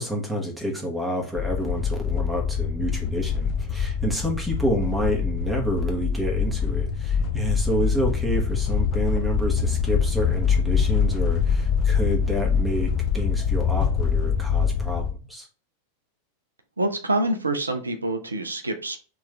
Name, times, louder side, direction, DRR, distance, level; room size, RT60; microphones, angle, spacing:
voice 1, 0.0-15.5, equal, 5° right, 0 dB, 1.3 m, -29 dB
sound 1, 1.4-15.1, left 6 dB, 35° left, 0.8 m, -24 dB
voice 2, 16.8-19.0, right 2 dB, 80° right, 7 dB, 0.5 m, -26 dB
3.5 x 3.0 x 3.4 m, 0.36 s
figure-of-eight pair, 90°, 0 cm